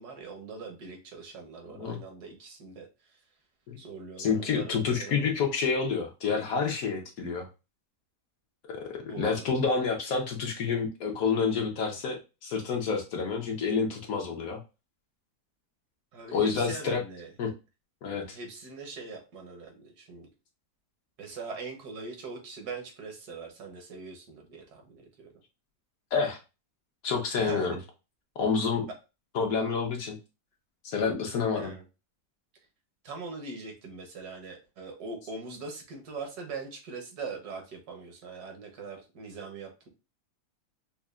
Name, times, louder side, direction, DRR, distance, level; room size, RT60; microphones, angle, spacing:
voice 1, 0.0-3.2 3.8-5.4 9.1-9.4 16.1-17.3 18.3-20.3 21.2-25.3 27.3-27.8 31.5-31.8 33.0-39.9, right 4 dB, 75° right, 3 dB, 1.5 m, -42 dB
voice 2, 4.2-7.4 8.7-14.6 16.3-17.0 17.4-17.5 18.0-18.4 26.1-26.4 27.0-27.8 28.4-28.9 29.3-30.2 30.8-31.7, left 5 dB, 65° left, 1 dB, 1.2 m, -28 dB
5.4 x 2.2 x 2.4 m, 0.29 s
omnidirectional pair, 1.7 m